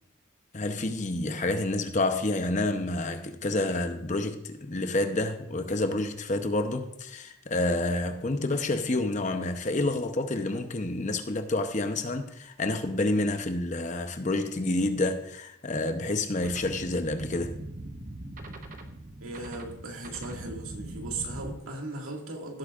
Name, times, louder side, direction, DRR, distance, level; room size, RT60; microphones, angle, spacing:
voice 1, 0.5-17.6, left 2 dB, 35° left, 0.8 m, -29 dB
sound 1, 16.4-21.5, right 1 dB, 40° right, 0.9 m, -41 dB
voice 2, 19.2-22.6, right 2 dB, 90° right, 2.1 m, -37 dB
16.5 x 8.3 x 2.5 m
head